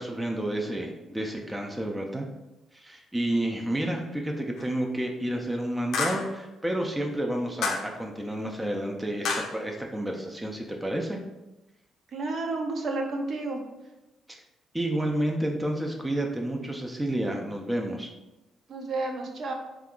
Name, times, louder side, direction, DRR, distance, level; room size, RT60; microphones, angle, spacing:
voice 1, 0.0-2.3 2.7-11.2 14.7-18.1, right 1 dB, 10° right, 1 dB, 0.4 m, -30 dB
sound 1, 4.6-4.7 5.9-6.4 7.6-8.0 9.2-9.6, left 4 dB, 75° left, 0.4 m, -29 dB
voice 2, 12.1-13.6 18.7-19.5, right 2 dB, 60° right, 2 dB, 0.6 m, -31 dB
2.7 x 2.3 x 3.6 m, 0.99 s
cardioid pair, 90°, 0 cm